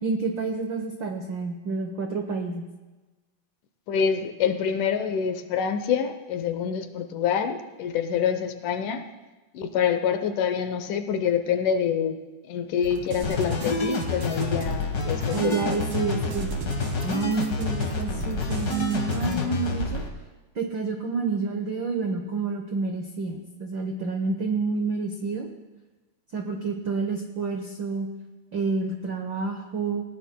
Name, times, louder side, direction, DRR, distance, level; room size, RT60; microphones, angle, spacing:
voice 1, 0.0-2.6 15.3-16.5 17.0-20.0 20.5-25.5 26.3-28.1 28.5-30.0, right 4 dB, 75° right, 3 dB, 1.0 m, -29 dB
voice 2, 3.9-9.1 9.5-12.2 12.5-15.9, left 7 dB, 80° left, 8 dB, 2.3 m, -26 dB
sound 1, 12.8-19.4, right 2 dB, 55° right, 2.4 m, -37 dB
sound 2, 13.2-20.1, left 3 dB, 45° left, 1.3 m, -28 dB
19.5 x 18.5 x 2.2 m, 1.2 s
omnidirectional pair, 3.6 m